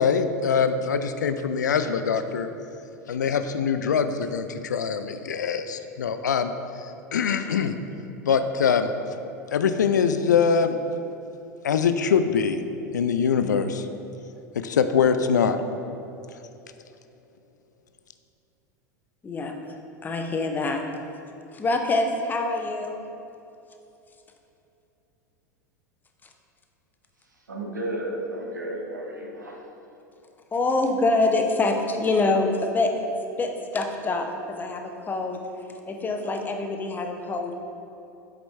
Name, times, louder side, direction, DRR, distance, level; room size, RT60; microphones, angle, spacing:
voice 1, 0.0-2.5 3.1-6.5 7.1-7.7 8.2-8.9 9.5-10.8 11.6-12.6 12.9-13.9 14.6-15.6, left 6 dB, 75° left, 9 dB, 0.4 m, -23 dB
voice 2, 19.2-19.5 20.0-20.8 21.5-23.0 30.5-32.9 33.4-34.3 34.6-35.4 35.9-37.5, left 3 dB, 20° left, 3 dB, 0.7 m, -25 dB
voice 3, 27.5-29.6, right 1 dB, 80° right, 0 dB, 1.0 m, -32 dB
7.9 x 5.1 x 3.2 m, 2.8 s
figure-of-eight pair, 85°, 10 cm